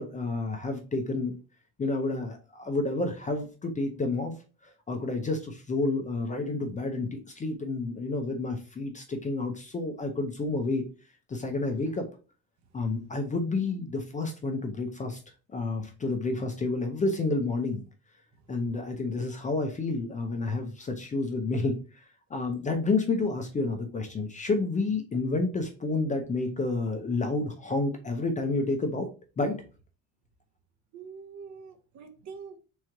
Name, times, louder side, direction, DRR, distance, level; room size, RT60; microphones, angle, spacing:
voice 1, 0.0-1.3 1.8-4.3 4.9-10.9 11.3-12.1 12.7-15.2 15.5-17.8 18.5-21.8 22.3-29.1 29.4-29.6, left 3 dB, 20° left, 0.5 m, -30 dB
voice 2, 30.9-32.6, right 5 dB, 50° right, 0.9 m, -45 dB
3.7 x 3.1 x 4.4 m
cardioid pair, 150°, 37 cm